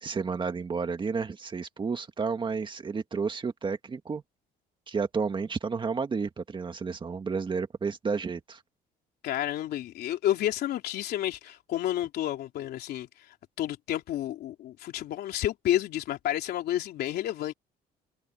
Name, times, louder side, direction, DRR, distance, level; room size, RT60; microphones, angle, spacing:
voice 1, 0.0-4.2 4.9-8.6, right 5 dB, 30° right, 2.0 m, -31 dB
voice 2, 9.2-17.5, left 12 dB, 70° left, 3.3 m, -30 dB
open air
cardioid pair, 110°, 17 cm